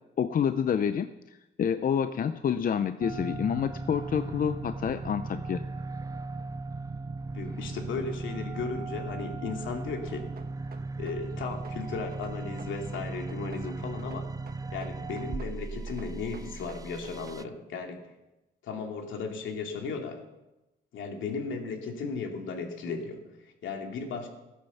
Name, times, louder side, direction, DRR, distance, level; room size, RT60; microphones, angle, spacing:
voice 1, 0.2-1.1 1.6-5.6, left 7 dB, 45° left, 11 dB, 0.6 m, -28 dB
sound 1, 3.0-17.4, right 3 dB, 20° right, 0.5 m, -37 dB
voice 2, 7.3-10.3 11.0-14.3 14.7-18.1 18.6-20.2 20.9-24.3, left 4 dB, 75° left, 3 dB, 2.5 m, -36 dB
sound 2, 10.4-11.8 12.1-13.7 14.0-15.6 15.9-17.4, right 5 dB, 50° right, 1.5 m, -50 dB
14.0 x 9.6 x 7.1 m, 0.99 s
cardioid pair, 90°, 20 cm